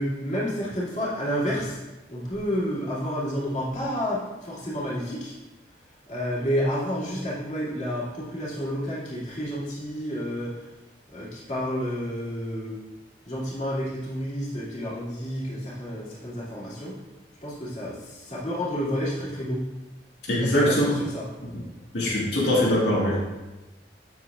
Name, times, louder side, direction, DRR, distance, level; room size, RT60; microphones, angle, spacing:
voice 1, 0.0-1.8 2.1-5.3 6.1-10.5 11.1-12.8 13.3-16.9 17.4-19.6 20.4-21.3, equal, 40° left, -8 dB, 2.4 m, -30 dB
voice 2, 20.3-20.9 21.9-23.1, left 1 dB, 75° left, -7 dB, 1.8 m, -22 dB
7.8 x 7.6 x 2.4 m, 1.1 s
head